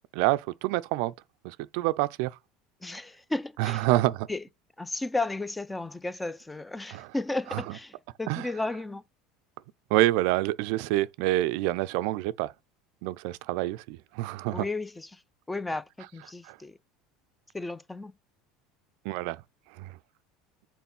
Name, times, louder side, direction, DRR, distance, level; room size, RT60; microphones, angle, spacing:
voice 1, 0.1-1.1 1.4-2.3 3.6-4.3 6.9-7.1 7.5-7.6 8.3-8.4 9.9-12.5 13.0-14.6 16.5-16.6 19.0-19.4 19.8-19.9, right 17 dB, 70° right, 0.4 m, -27 dB
voice 2, 2.8-3.9 4.3-4.4 4.8-9.0 14.5-15.2 15.5-16.8 17.5-18.1, left 2 dB, 10° left, 0.5 m, -34 dB
5.9 x 4.0 x 5.4 m
hypercardioid pair, 85°, 0 cm